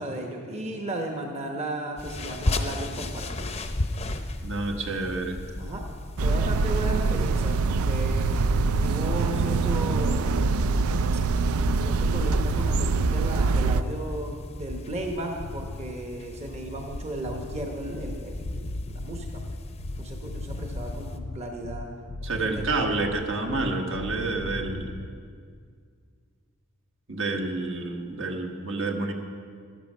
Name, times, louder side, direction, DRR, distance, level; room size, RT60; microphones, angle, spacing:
voice 1, 0.0-3.6 5.5-5.9 6.2-8.3 8.8-10.4 11.1-11.2 11.8-19.4 20.0-21.9 22.4-22.6, right 1 dB, 30° right, 2 dB, 1.0 m, -35 dB
sound 1, 2.0-21.2, left 1 dB, 30° left, 0.6 m, -34 dB
voice 2, 4.4-5.4 22.2-24.9 27.1-29.1, right 3 dB, 60° right, 3 dB, 1.3 m, -29 dB
sound 2, 6.2-13.8, right 4 dB, 80° right, 0.4 m, -24 dB
sound 3, 6.4-6.7 8.0-8.5 9.9-10.3 11.7-12.3 13.5-14.0 15.4-15.9 17.2-25.1, left 2 dB, 70° left, 0.6 m, -38 dB
12.5 x 12.5 x 5.4 m, 2.1 s
head